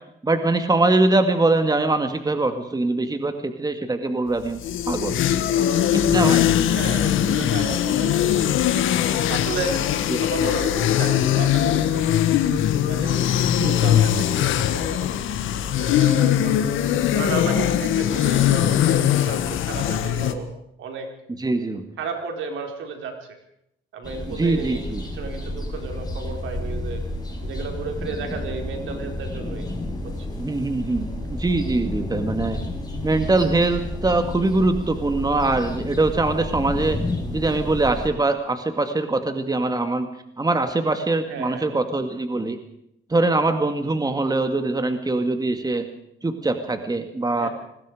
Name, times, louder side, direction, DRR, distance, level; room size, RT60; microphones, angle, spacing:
voice 1, 0.2-5.2 6.1-6.5 10.1-10.2 13.6-14.0 21.4-21.8 24.3-25.0 30.4-32.6 33.0-37.0 37.3-40.1 40.4-42.6 43.1-45.9 46.2-47.5, right 2 dB, 20° right, 7 dB, 2.2 m, -23 dB
sound 1, 4.4-20.3, left 10 dB, 85° left, 1.7 m, -21 dB
voice 2, 5.5-6.4 6.7-8.5 9.3-12.0 12.9-15.1 15.4-16.5 17.1-20.5 20.8-21.1 22.0-23.4 23.9-27.0 27.4-29.7 30.0-30.3 41.3-41.7 47.4-47.5, right 4 dB, 75° right, 4 dB, 4.8 m, -33 dB
sound 2, 24.0-38.1, left 1 dB, 20° left, 6.3 m, -31 dB
26.0 x 20.0 x 5.0 m, 0.75 s
cardioid pair, 90°, 20 cm